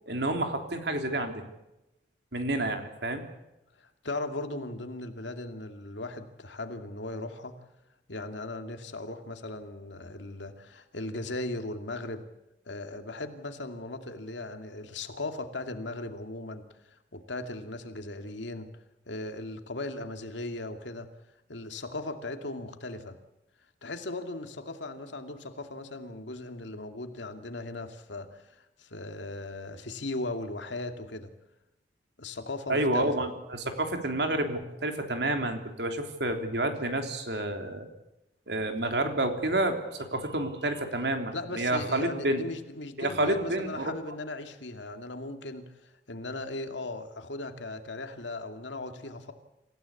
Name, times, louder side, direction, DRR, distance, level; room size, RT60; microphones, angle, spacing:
voice 1, 0.1-1.5 2.3-3.2 32.7-37.9 38.5-42.4 43.0-43.9, right 1 dB, 65° right, 5 dB, 3.3 m, -29 dB
voice 2, 3.8-7.6 8.1-12.2 12.7-16.6 17.1-18.7 19.1-21.1 21.5-23.2 23.8-31.3 32.2-33.1 41.3-49.3, left 2 dB, 80° left, 6 dB, 2.4 m, -38 dB
27.0 x 16.0 x 8.4 m, 0.91 s
head